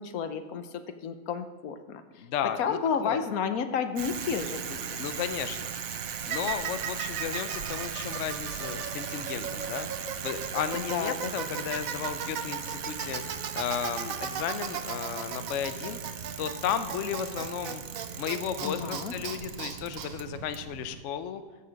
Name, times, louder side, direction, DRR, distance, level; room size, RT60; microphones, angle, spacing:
voice 1, 0.0-2.2 2.6-5.0 10.9-11.5 18.6-19.1, left 6 dB, 80° left, 9 dB, 1.3 m, -32 dB
voice 2, 2.2-3.2 5.0-5.7 6.3-16.0 16.4-17.8 18.2-21.4, left 9 dB, 65° left, 11 dB, 0.9 m, -34 dB
Bicycle, 4.0-21.0, right 7 dB, 70° right, 1.2 m, -36 dB
14.0 x 6.9 x 5.1 m, 1.5 s
omnidirectional pair, 1.5 m